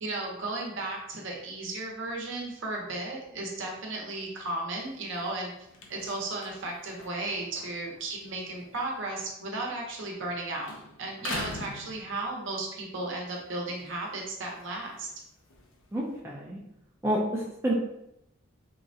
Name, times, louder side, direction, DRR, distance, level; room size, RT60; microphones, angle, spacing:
voice 1, 0.0-10.7 11.0-15.1, right 2 dB, 60° right, 0 dB, 0.7 m, -35 dB
sound 1, 4.7-10.4 10.6-12.7 13.1-16.2, left 2 dB, 70° left, 0.5 m, -45 dB
voice 2, 15.9-16.6 17.0-17.7, right 1 dB, 10° right, -4 dB, 0.4 m, -29 dB
3.7 x 2.1 x 2.6 m, 0.81 s
head